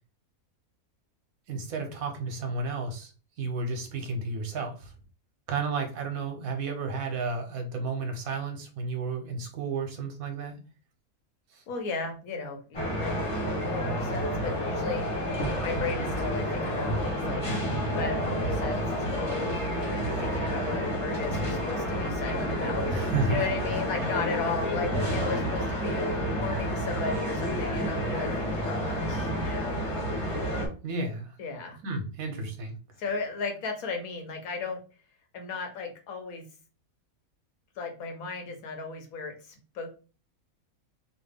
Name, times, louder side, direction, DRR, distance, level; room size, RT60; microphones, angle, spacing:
voice 1, 1.5-3.1 3.4-4.9 5.5-10.6 11.5-11.6 22.9-23.5 24.0-24.1 30.8-31.4 31.8-32.7, right 3 dB, 75° right, 3 dB, 1.2 m, -32 dB
voice 2, 11.7-13.3 13.6-15.1 15.6-17.5 17.9-22.9 23.3-29.8 31.4-31.8 33.0-34.8 35.3-36.5 37.8-39.9, left 4 dB, 80° left, 4 dB, 1.3 m, -35 dB
sound 1, 12.7-30.7, equal, 25° left, 1.1 m, -30 dB
Thunder, 15.2-19.3, equal, 60° left, 0.9 m, -40 dB
3.1 x 2.4 x 3.4 m, 0.36 s
omnidirectional pair, 1.5 m